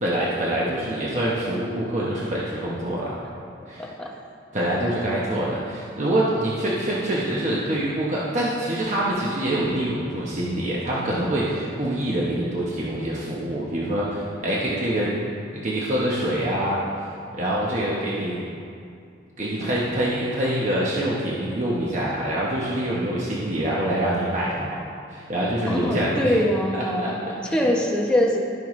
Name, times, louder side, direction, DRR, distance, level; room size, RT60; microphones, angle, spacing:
voice 1, 0.0-3.2 3.7-3.9 4.5-15.1 15.6-16.8 17.3-18.4 19.4-24.8 25.1-26.4 26.7-27.7, right 1 dB, 40° right, -6 dB, 1.0 m, -25 dB
voice 2, 3.8-4.1 23.2-23.3 25.7-27.2 27.5-28.4, equal, 5° left, -2 dB, 0.9 m, -23 dB
15.5 x 5.6 x 3.2 m, 2.4 s
head